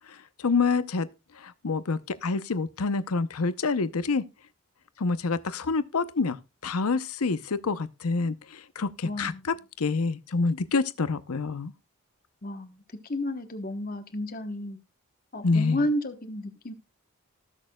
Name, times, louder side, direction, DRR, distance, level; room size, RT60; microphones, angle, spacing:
voice 1, 0.4-1.1 1.4-4.2 5.0-9.3 9.8-11.7 15.4-15.8, left 4 dB, 90° left, 0.7 m, -27 dB
voice 2, 9.0-9.5 12.4-14.8 15.3-16.7, left 1 dB, 40° left, 1.1 m, -32 dB
19.0 x 6.5 x 2.3 m
head